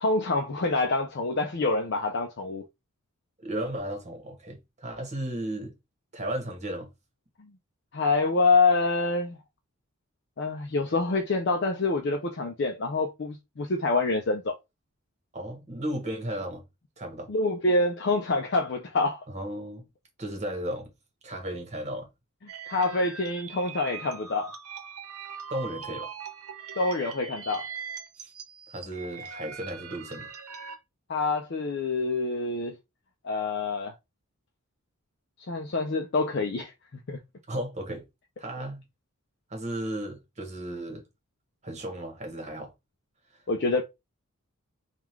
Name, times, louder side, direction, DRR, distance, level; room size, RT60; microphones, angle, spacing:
voice 1, 0.0-2.7 7.9-9.4 10.4-14.5 17.3-19.2 22.7-24.5 26.8-27.7 31.1-32.8 33.2-33.9 35.5-36.7 37.1-37.2 43.5-43.8, left 3 dB, 50° left, 0.5 m, -26 dB
voice 2, 3.4-5.7 6.1-6.9 15.3-16.6 17.0-17.3 19.3-19.9 20.2-20.9 21.2-22.1 25.5-26.1 28.2-28.3 28.7-30.3 37.5-38.0 38.4-38.8 39.5-41.0 41.6-42.7, right 1 dB, 30° right, 1.3 m, -34 dB
sound 1, 22.5-30.8, right 6 dB, 85° right, 0.9 m, -41 dB
3.7 x 2.4 x 4.5 m
head